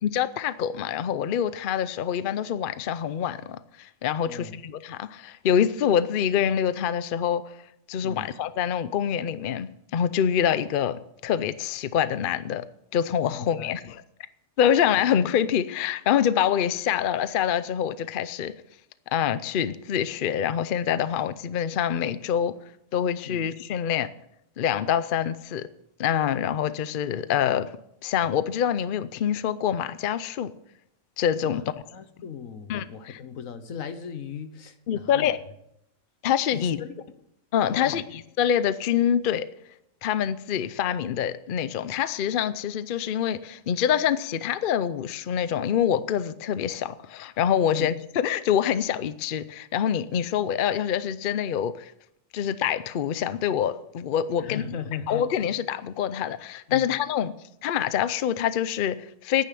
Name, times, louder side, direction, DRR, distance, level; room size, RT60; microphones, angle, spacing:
voice 1, 0.0-7.5 7.9-12.6 12.9-14.0 14.6-18.5 19.1-22.5 22.9-24.1 24.6-25.7 26.0-27.7 28.0-30.5 31.2-31.6 32.7-33.2 34.9-35.4 36.2-36.8 37.5-39.4 40.0-51.9 52.3-54.6 55.1-57.3 57.6-59.4, left 9 dB, 55° left, 0.6 m, -25 dB
voice 2, 4.2-4.6 8.0-8.3 13.3-13.8 23.2-23.5 31.5-35.3 36.5-36.9 37.7-38.0 47.7-47.9 54.4-55.3 56.7-57.0, left 7 dB, 80° left, 1.4 m, -38 dB
10.5 x 9.6 x 7.6 m
omnidirectional pair, 1.4 m